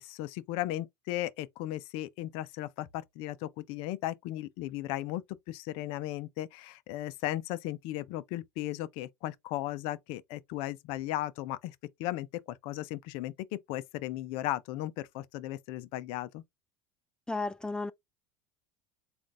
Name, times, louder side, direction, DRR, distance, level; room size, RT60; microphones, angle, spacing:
voice 1, 0.0-5.2 5.5-16.4, left 15 dB, 65° left, 0.6 m, -36 dB
voice 2, 17.3-17.9, left 3 dB, 10° left, 0.3 m, -33 dB
3.9 x 2.5 x 3.2 m
supercardioid pair, 105°, 10 cm